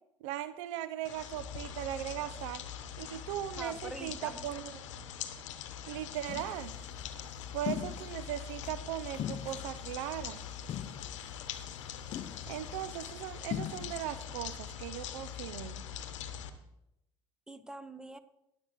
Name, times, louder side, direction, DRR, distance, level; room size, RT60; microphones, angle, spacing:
voice 1, 0.2-2.6 3.0-4.6 5.9-6.7 7.5-10.4 12.5-15.8, right 12 dB, 75° right, 13 dB, 0.5 m, -38 dB
sound 1, 1.0-16.5, left 9 dB, 80° left, 0.9 m, -43 dB
voice 2, 3.6-4.5 17.5-18.2, right 1 dB, 5° right, 12 dB, 0.9 m, -44 dB
sound 2, 6.3-6.6 7.7-8.2 8.6-8.8 9.1-10.2 10.7-11.4 11.7-11.8 12.1-12.8 13.5-14.1, left 10 dB, 45° left, 0.6 m, -39 dB
20.5 x 7.5 x 3.0 m, 0.85 s
hypercardioid pair, 65°, 16 cm